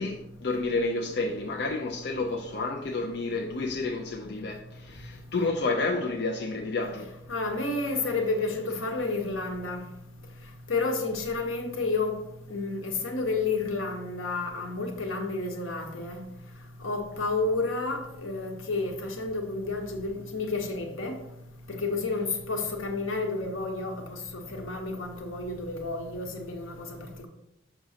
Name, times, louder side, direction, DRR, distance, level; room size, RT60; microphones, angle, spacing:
voice 1, 0.0-7.1 8.0-8.2, left 3 dB, 55° left, 0.4 m, -30 dB
voice 2, 7.3-9.8 10.7-12.1 12.5-16.2 16.8-21.1 21.8-24.2 24.5-26.7, left 3 dB, 85° left, 1.0 m, -30 dB
6.1 x 6.0 x 2.8 m
head